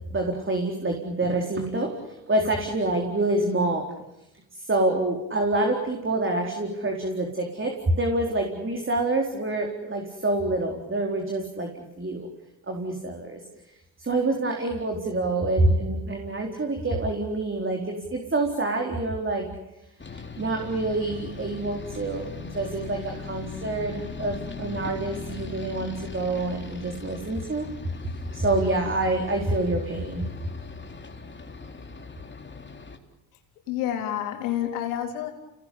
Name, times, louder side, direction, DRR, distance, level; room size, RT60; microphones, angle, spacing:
voice 1, 0.1-3.8 4.5-12.3 12.7-13.4 14.0-19.5 20.1-27.7 28.3-30.2, right 2 dB, 30° right, 2 dB, 4.3 m, -27 dB
sound 1, 20.0-33.0, left 4 dB, 25° left, 4.0 m, -39 dB
voice 2, 33.7-35.3, left 11 dB, 85° left, 3 dB, 3.8 m, -28 dB
29.5 x 18.5 x 8.6 m, 0.92 s
hypercardioid pair, 60°, 43 cm